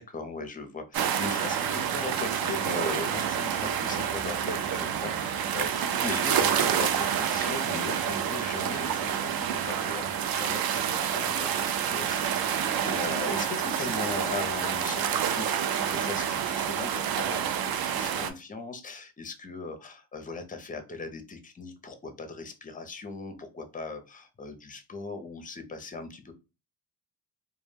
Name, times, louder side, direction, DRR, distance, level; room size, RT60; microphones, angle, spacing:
voice 1, 0.0-26.3, left 3 dB, 20° left, 7 dB, 0.5 m, -39 dB
sound 1, 0.9-18.3, right 8 dB, 55° right, 0.5 m, -28 dB
2.2 x 2.1 x 3.2 m, 0.29 s
cardioid pair, 90°, 44 cm